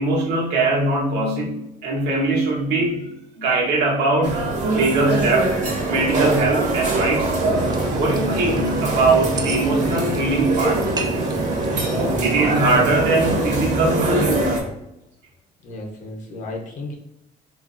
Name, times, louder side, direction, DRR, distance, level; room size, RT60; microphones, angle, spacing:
voice 1, 0.0-4.4 4.7-5.5 5.9-7.4 8.0-10.9 12.2-14.6, right 2 dB, 80° right, -2 dB, 0.9 m, -21 dB
sound 1, 4.2-14.6, right 2 dB, 45° right, 0.7 m, -23 dB
sound 2, 7.5-12.7, right 3 dB, 25° right, 0.3 m, -33 dB
voice 2, 11.6-12.4 12.6-12.9 15.6-16.9, left 1 dB, 50° left, 1 dB, 0.7 m, -33 dB
2.9 x 2.4 x 2.4 m, 0.82 s
cardioid pair, 110°, 17 cm